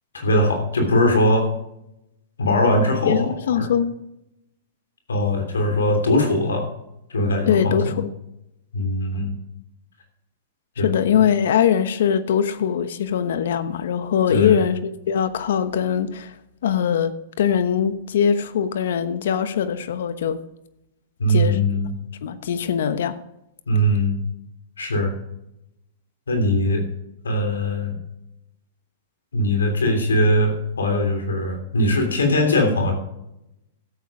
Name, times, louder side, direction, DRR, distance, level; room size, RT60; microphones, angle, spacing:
voice 1, 0.1-1.5 2.4-3.7 5.1-6.7 7.1-8.0 8.7-9.4 10.8-11.2 14.3-14.6 21.2-21.9 23.7-24.2 24.8-25.1 26.3-26.8 27.2-28.0 29.3-32.9, left 1 dB, 90° left, 4 dB, 3.2 m, -21 dB
voice 2, 3.0-4.0 7.5-7.9 10.8-16.3 16.6-17.1 17.4-20.4 21.3-21.6 22.2-23.1, left 8 dB, 70° left, 12 dB, 1.1 m, -21 dB
12.5 x 8.2 x 4.9 m, 0.85 s
hypercardioid pair, 120°, 0 cm